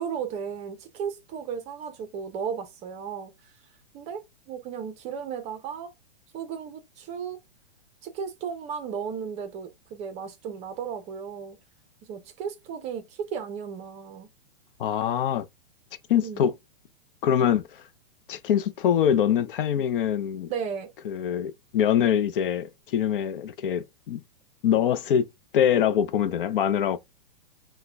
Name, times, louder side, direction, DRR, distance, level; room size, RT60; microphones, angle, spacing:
voice 1, 0.0-3.3 3.9-5.9 6.3-7.4 8.0-11.6 12.1-14.3 16.2-16.5 20.5-20.9 24.7-24.8, right 7 dB, 20° right, 0.6 m, -35 dB
voice 2, 14.8-15.5 16.1-16.5 17.2-17.8 18.3-20.5 21.0-24.2 24.6-25.3 25.5-27.0, left 9 dB, 55° left, 0.6 m, -24 dB
5.7 x 2.2 x 3.3 m
hypercardioid pair, 140°, 31 cm